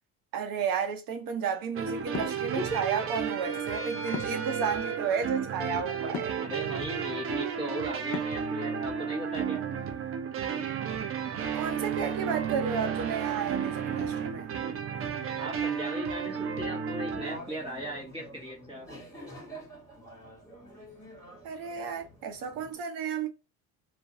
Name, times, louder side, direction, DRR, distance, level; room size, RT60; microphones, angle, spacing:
voice 1, 0.3-6.3 11.5-14.5 21.4-23.3, right 6 dB, 60° right, 0.8 m, -32 dB
sound 1, 1.7-17.4, right 7 dB, 35° right, 0.4 m, -32 dB
sound 2, 2.1-2.4 4.1-4.5 6.1-6.4 8.1-8.5, left 8 dB, 45° left, 0.5 m, -36 dB
voice 2, 6.4-9.6 15.4-18.9, right 1 dB, 15° right, 1.0 m, -38 dB
sound 3, 11.5-22.7, right 1 dB, 10° left, 1.2 m, -49 dB
2.4 x 2.2 x 2.6 m
cardioid pair, 120°, 38 cm